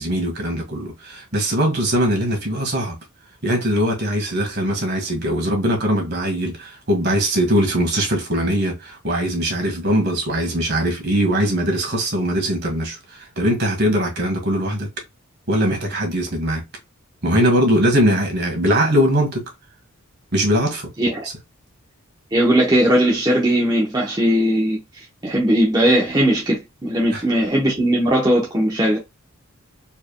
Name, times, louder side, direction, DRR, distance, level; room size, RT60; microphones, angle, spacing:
voice 1, 0.0-3.0 3.4-14.9 15.5-16.6 17.2-19.5 20.3-20.9 27.1-27.2, equal, 45° right, 1.6 m, -21 dB
voice 2, 22.3-24.8 25.2-29.0, equal, 20° right, 0.9 m, -18 dB
4.3 x 3.4 x 2.3 m
head